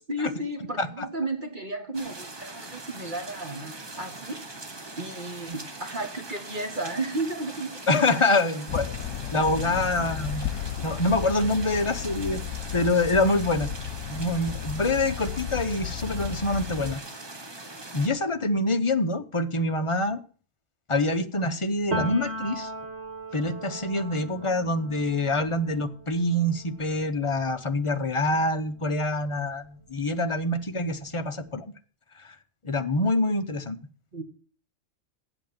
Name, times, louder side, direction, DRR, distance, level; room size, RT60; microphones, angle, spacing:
voice 1, 0.1-4.4 5.0-7.8 34.1-34.2, right 2 dB, 40° right, 5 dB, 1.7 m, -33 dB
sound 1, 1.9-18.1, right 2 dB, 20° right, 1.0 m, -41 dB
voice 2, 7.9-8.9 9.3-10.5 10.8-12.4 12.7-13.7 14.1-17.0 17.9-20.2 20.9-22.7 23.3-31.7 32.6-33.8, left 2 dB, 30° left, 8 dB, 0.8 m, -25 dB
sound 2, 8.7-17.0, left 10 dB, 90° left, 1.1 m, -34 dB
Piano, 21.9-29.5 29.9-31.4, equal, 55° right, 2.1 m, -39 dB
8.0 x 7.8 x 8.7 m, 0.42 s
omnidirectional pair, 1.3 m